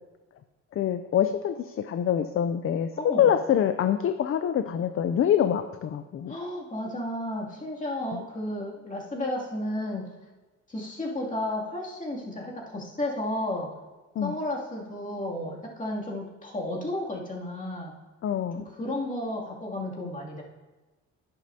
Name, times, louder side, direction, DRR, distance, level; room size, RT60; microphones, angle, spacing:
voice 1, 0.7-6.3 8.1-8.2 14.2-14.3 18.2-18.6, left 9 dB, 45° left, 9 dB, 0.5 m, -25 dB
voice 2, 3.0-3.3 6.3-10.1 10.7-13.7 14.2-18.0 18.6-20.4, left 1 dB, 25° left, -4 dB, 2.6 m, -33 dB
10.5 x 10.5 x 2.8 m, 1.2 s
cardioid pair, 90°, 30 cm